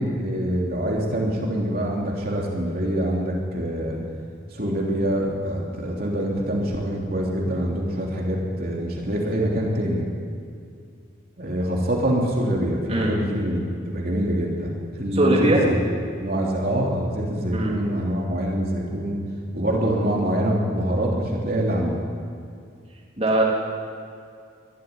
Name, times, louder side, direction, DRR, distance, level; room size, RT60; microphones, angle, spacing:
voice 1, 0.0-4.0 4.5-10.1 11.4-15.8 16.2-19.2 19.5-22.0, right 1 dB, 45° right, -2 dB, 3.3 m, -25 dB
voice 2, 15.1-15.6 17.5-17.7 23.2-23.4, right 1 dB, 30° right, -4 dB, 3.2 m, -20 dB
23.0 x 13.0 x 9.6 m, 2.3 s
head